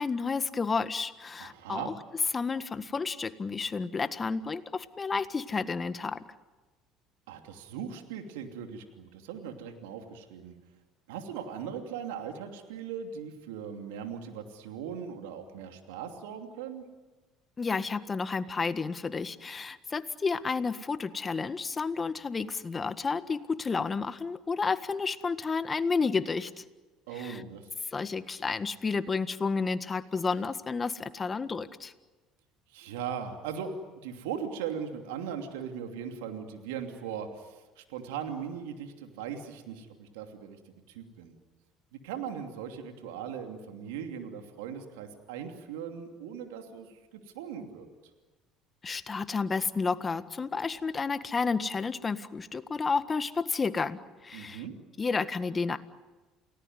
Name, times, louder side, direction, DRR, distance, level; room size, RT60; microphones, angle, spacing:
voice 1, 0.0-1.9 2.3-6.2 17.6-26.6 27.2-27.4 27.9-31.9 48.8-54.6 55.0-55.8, left 4 dB, 30° left, 12 dB, 1.6 m, -31 dB
voice 2, 1.4-1.9 7.3-10.5 11.1-16.8 27.1-27.8 32.7-33.7 34.0-41.4 41.9-47.9 54.3-54.7, right 7 dB, 85° right, 5 dB, 2.8 m, -39 dB
29.5 x 18.5 x 9.5 m, 1.2 s
hypercardioid pair, 70°, 0 cm